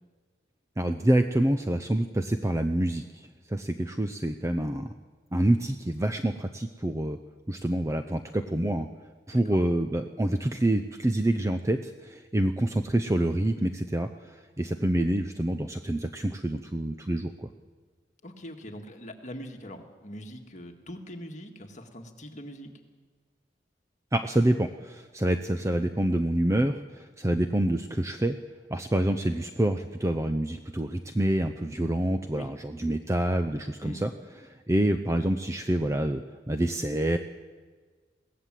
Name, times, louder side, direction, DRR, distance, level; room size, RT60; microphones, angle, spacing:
voice 1, 0.8-3.0 3.5-4.9 5.3-7.2 7.5-8.9 9.3-17.5 24.1-28.4 28.7-34.1 34.4-37.2, right 1 dB, 15° right, 8 dB, 0.6 m, -27 dB
voice 2, 9.3-9.6 18.2-22.7 32.3-32.5 32.8-32.9 33.8-34.0, equal, 45° left, 4 dB, 1.9 m, -42 dB
22.0 x 17.5 x 7.6 m, 1.5 s
head